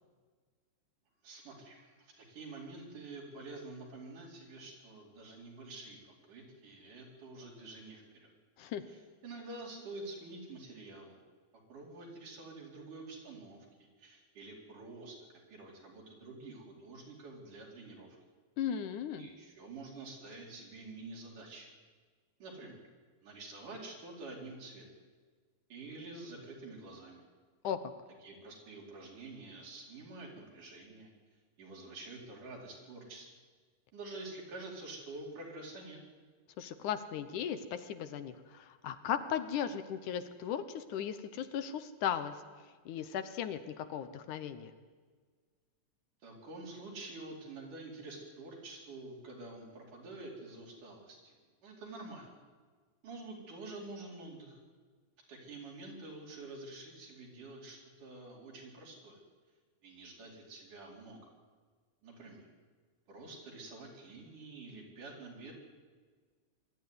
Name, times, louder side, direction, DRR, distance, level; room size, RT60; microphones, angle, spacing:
voice 1, 1.2-8.3 8.9-11.2 11.7-15.2 15.5-18.2 19.2-21.7 22.4-22.8 23.2-24.9 25.7-27.2 28.2-31.1 31.6-33.3 33.9-36.0 46.2-51.3 51.6-52.3 53.0-54.6 55.3-59.2 59.8-61.3 62.0-62.5 63.1-65.5, right 2 dB, 70° right, -2 dB, 5.8 m, -48 dB
voice 2, 18.6-19.3 27.6-27.8 36.6-42.4 42.9-44.7, left 9 dB, 75° left, 10 dB, 2.4 m, -37 dB
23.0 x 13.0 x 9.6 m, 1.5 s
omnidirectional pair, 3.7 m